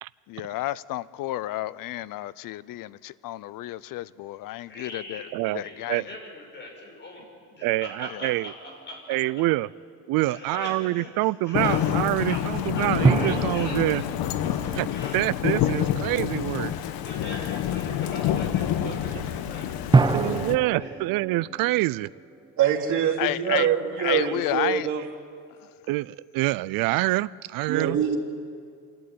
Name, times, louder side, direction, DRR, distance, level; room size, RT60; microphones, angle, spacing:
voice 1, 0.3-5.3 5.5-6.1 8.1-8.2 19.8-19.9 23.2-23.7 24.0-24.9 25.6-25.7, left 15 dB, 70° left, 0.6 m, -31 dB
voice 2, 4.6-9.2 10.2-12.4 12.7-14.1 14.4-15.2 16.6-21.0, left 1 dB, 30° left, 5.9 m, -42 dB
voice 3, 7.6-8.5 9.1-9.7 10.1-14.0 14.7-14.9 15.1-16.7 18.8-18.9 20.1-22.1 25.9-28.0, right 19 dB, 75° right, 0.5 m, -26 dB
sound 1, 8.7-9.4 13.0-15.9 19.9-23.2, right 4 dB, 15° right, 0.5 m, -27 dB
Thunder / Rain, 11.5-20.6, left 10 dB, 90° left, 1.1 m, -27 dB
voice 4, 22.6-25.0 27.7-28.2, right 9 dB, 55° right, 3.3 m, -24 dB
27.5 x 12.0 x 9.4 m
cardioid pair, 155°, 35 cm